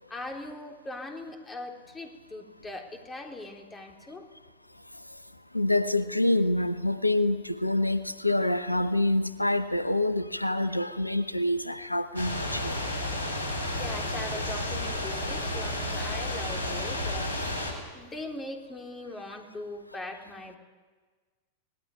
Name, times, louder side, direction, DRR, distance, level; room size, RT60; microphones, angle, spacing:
voice 1, 0.1-4.3 13.8-17.5 17.9-20.6, left 2 dB, 15° left, 3 dB, 3.8 m, -40 dB
voice 2, 5.5-12.8, left 1 dB, 85° left, 14 dB, 1.0 m, -26 dB
sound 1, 12.2-17.7, left 1 dB, 85° right, 6.3 m, -31 dB
26.0 x 19.5 x 9.8 m, 1.4 s
figure-of-eight pair, 90°, 0 cm